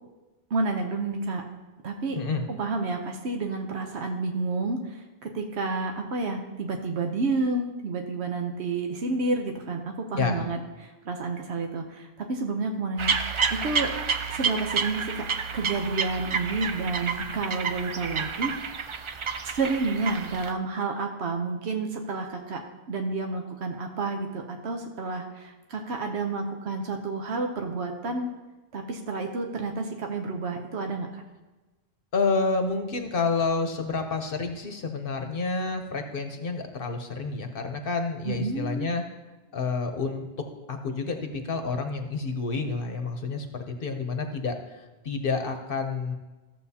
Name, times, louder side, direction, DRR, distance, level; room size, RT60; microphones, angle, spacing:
voice 1, 0.5-1.4 1.8-2.2 2.5-13.1 13.5-14.0 14.3-15.2 15.5-18.8 19.4-22.6 22.9-28.3 28.7-31.2 38.2-38.9, right 3 dB, 85° right, 3 dB, 1.1 m, -30 dB
voice 2, 2.2-2.5 10.2-10.4 32.1-39.0 39.5-46.1, left 4 dB, 60° left, 5 dB, 0.9 m, -29 dB
sound 1, 13.0-20.5, right 5 dB, 50° right, 0.3 m, -29 dB
14.0 x 7.5 x 2.8 m, 1.2 s
omnidirectional pair, 1.1 m